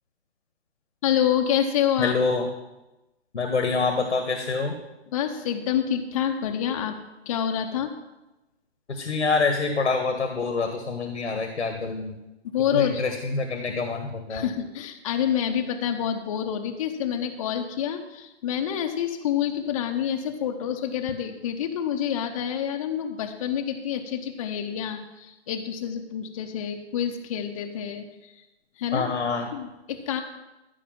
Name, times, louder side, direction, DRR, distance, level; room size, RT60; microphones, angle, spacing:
voice 1, 1.0-2.1 5.1-7.0 7.3-7.9 12.5-13.2 14.3-28.4 28.8-29.1 29.5-30.2, left 9 dB, 30° left, 4 dB, 0.9 m, -27 dB
voice 2, 2.0-2.4 3.3-4.7 8.9-12.2 12.7-14.4 28.9-29.5, left 4 dB, 90° left, 5 dB, 1.7 m, -26 dB
14.5 x 5.0 x 7.3 m, 1.0 s
hypercardioid pair, 150°, 34 cm